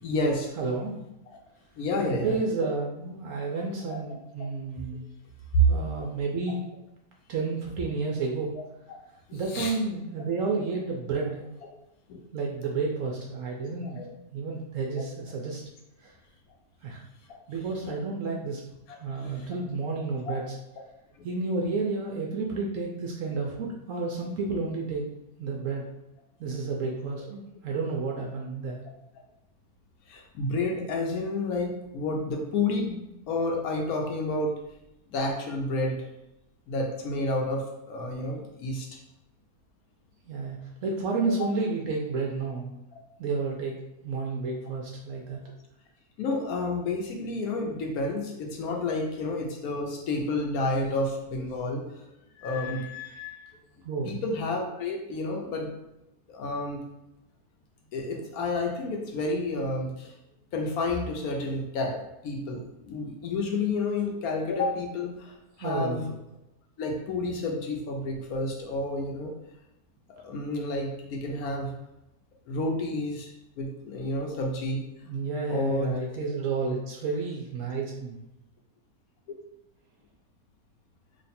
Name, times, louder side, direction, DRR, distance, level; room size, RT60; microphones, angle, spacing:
voice 1, 0.0-0.5 1.8-2.4 3.9-4.0 5.5-5.6 8.9-9.0 9.3-9.8 12.1-12.2 13.8-14.0 14.9-15.0 17.3-17.4 17.6-17.9 19.2-19.5 20.3-20.4 21.2-21.3 30.1-33.0 33.3-34.5 35.1-36.1 36.7-38.9 41.4-41.5 42.9-43.0 46.2-52.1 52.4-53.5 54.0-55.7 56.3-56.8 57.9-60.1 60.5-62.0 62.2-66.1 66.8-69.3 70.2-71.7 72.5-73.3 73.6-74.8 75.5-75.9, left 2 dB, 70° left, 0 dB, 1.1 m, -30 dB
voice 2, 0.6-0.9 2.0-5.0 5.6-6.6 7.3-8.5 9.3-11.5 12.3-14.0 14.3-15.6 16.0-16.1 16.8-17.0 17.5-18.6 19.0-20.4 21.2-25.0 25.4-25.8 26.4-28.8 40.3-42.7 43.2-43.8 44.0-45.4 53.8-54.2 65.6-66.1 75.1-78.2, right 4 dB, 65° right, -1 dB, 0.8 m, -31 dB
3.1 x 2.4 x 4.1 m, 0.88 s
omnidirectional pair, 1.7 m